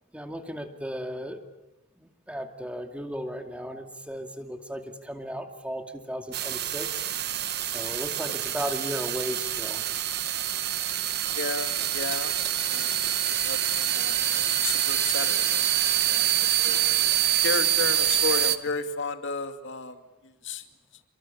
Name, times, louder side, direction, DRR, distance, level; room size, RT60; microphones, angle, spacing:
voice 1, 0.1-1.4 2.0-7.0 7.7-9.8, equal, 5° right, 5 dB, 2.4 m, -35 dB
sound 1, 6.3-18.6, right 11 dB, 50° right, 1.3 m, -26 dB
voice 2, 11.3-12.4 12.6-12.9 13.4-16.9 17.4-20.6, left 3 dB, 60° left, 7 dB, 2.5 m, -33 dB
29.5 x 23.0 x 8.7 m, 1.0 s
head